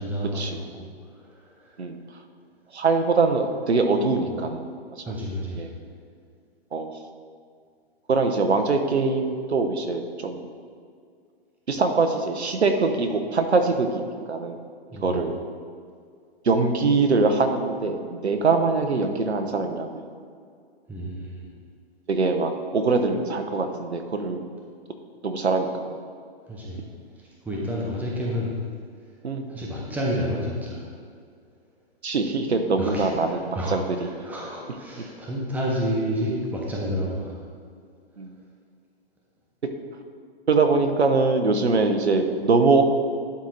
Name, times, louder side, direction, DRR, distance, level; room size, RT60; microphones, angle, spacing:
voice 1, 0.0-1.8 5.1-5.8 14.9-15.3 20.9-21.5 26.5-26.8 27.2-28.5 29.0-29.1 29.5-30.9 32.8-37.4, equal, 5° right, -4 dB, 1.0 m, -30 dB
voice 2, 2.7-4.7 5.6-5.7 6.7-7.0 8.1-10.4 11.7-14.6 15.0-15.3 16.4-20.0 22.1-24.4 25.2-26.0 29.2-29.5 32.0-34.0 38.2-38.3 40.5-42.8, right 3 dB, 90° right, 6 dB, 1.0 m, -23 dB
11.5 x 4.4 x 4.0 m, 2.2 s
hypercardioid pair, 125°, 32 cm